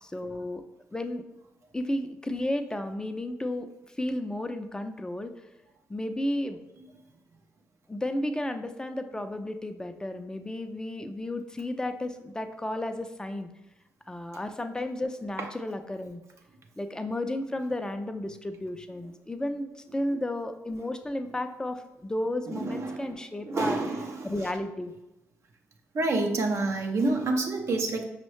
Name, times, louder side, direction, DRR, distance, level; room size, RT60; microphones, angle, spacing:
voice 1, 0.0-0.6 0.9-1.2 1.7-3.7 4.0-5.3 5.9-6.6 7.9-13.5 14.1-16.2 16.8-23.8 24.2-24.9, left 1 dB, 10° left, 7 dB, 0.4 m, -33 dB
voice 2, 22.5-23.2 23.5-24.3 25.9-28.0, right 2 dB, 50° right, 3 dB, 0.5 m, -28 dB
5.3 x 2.1 x 3.1 m, 0.93 s
hypercardioid pair, 45°, 6 cm